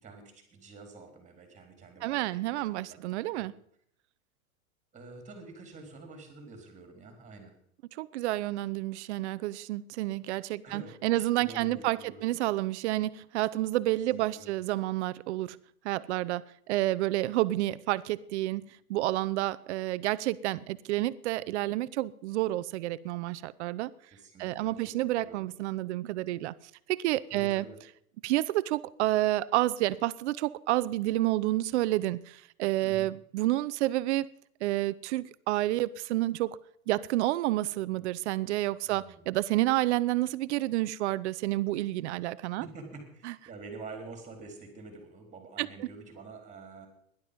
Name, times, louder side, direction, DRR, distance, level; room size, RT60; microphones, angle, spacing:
voice 1, 0.0-3.0 3.2-3.5 4.9-7.5 10.6-12.2 14.1-14.6 24.1-24.9 25.2-25.4 27.3-27.8 32.8-33.1 38.8-39.3 42.6-46.9, right 3 dB, 15° right, 4.3 m, -47 dB
voice 2, 2.0-3.5 8.0-15.6 15.8-18.6 18.9-23.9 24.4-26.5 26.9-27.7 28.2-34.3 34.6-36.6 36.9-42.6 43.2-43.3 45.6-45.9, right 16 dB, 50° right, 0.8 m, -29 dB
17.0 x 11.5 x 5.4 m
hypercardioid pair, 120°, 43 cm